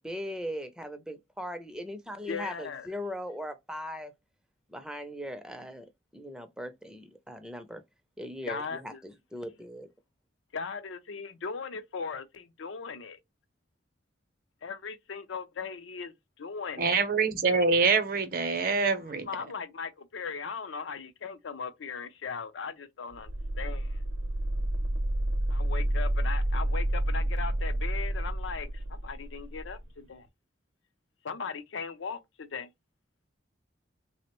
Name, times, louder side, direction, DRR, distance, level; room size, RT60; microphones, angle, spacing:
voice 1, 0.0-4.1 4.7-7.8 8.2-9.9, equal, 5° right, 0.4 m, -39 dB
voice 2, 2.3-2.9 8.5-9.0 10.5-13.2 14.6-17.0 19.2-23.3 23.6-24.0 25.5-30.3 31.2-32.7, left 5 dB, 80° left, 0.5 m, -38 dB
voice 3, 16.8-19.3, right 4 dB, 50° right, 0.6 m, -25 dB
sound 1, 23.1-29.8, right 1 dB, 85° right, 0.6 m, -29 dB
3.3 x 2.1 x 2.9 m
head